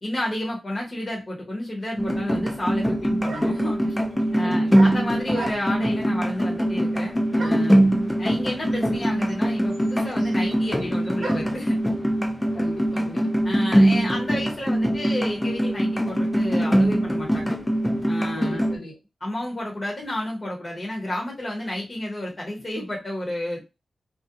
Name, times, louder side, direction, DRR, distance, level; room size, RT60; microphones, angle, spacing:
voice 1, 0.0-4.0 4.3-7.8 8.2-11.8 13.4-17.5 18.1-18.6 19.2-23.6, left 1 dB, 30° left, -2 dB, 0.8 m, -31 dB
sound 1, 2.0-18.8, equal, 10° left, 0.4 m, -22 dB
sound 2, 3.2-3.7 4.7-5.9 7.4-7.8 8.7-8.8 9.0-11.6, right 3 dB, 85° right, 0.5 m, -37 dB
voice 2, 4.4-4.9 12.5-13.3 18.4-19.0, left 1 dB, 75° left, -2 dB, 1.2 m, -39 dB
2.4 x 2.1 x 2.6 m, 0.25 s
wide cardioid pair, 135°, 0 cm